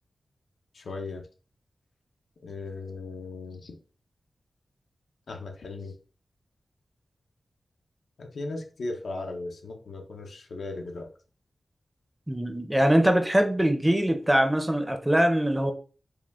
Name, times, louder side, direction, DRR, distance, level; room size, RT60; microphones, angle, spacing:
voice 1, 0.7-1.3 2.4-3.7 5.3-5.9 8.2-11.1, left 3 dB, 85° left, 3 dB, 0.8 m, -37 dB
voice 2, 12.3-15.7, right 1 dB, 10° right, 6 dB, 0.5 m, -22 dB
4.9 x 2.3 x 3.5 m, 0.38 s
wide cardioid pair, 145°, 0 cm